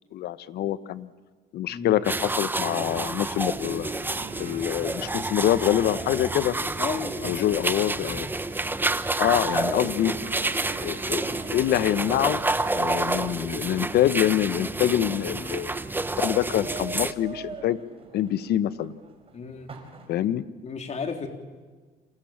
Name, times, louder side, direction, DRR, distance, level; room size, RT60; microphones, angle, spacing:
voice 1, 0.1-1.1 1.5-3.9 4.4-6.5 7.2-8.3 9.2-10.1 10.8-11.2 11.5-12.4 12.7-15.7 16.2-17.8 18.1-18.9 20.1-20.4, left 12 dB, 70° left, 15 dB, 1.2 m, -25 dB
voice 2, 1.7-2.0 6.8-7.6 19.3-19.7 20.6-21.3, left 5 dB, 40° left, 6 dB, 3.8 m, -33 dB
sound 1, 2.0-17.1, right 2 dB, 10° right, 1.1 m, -29 dB
sound 2, 2.9-17.6, right 4 dB, 65° right, 5.3 m, -47 dB
sound 3, 11.0-20.1, right 3 dB, 35° right, 5.2 m, -46 dB
29.0 x 27.5 x 7.4 m, 1.4 s
cardioid pair, 110°, 17 cm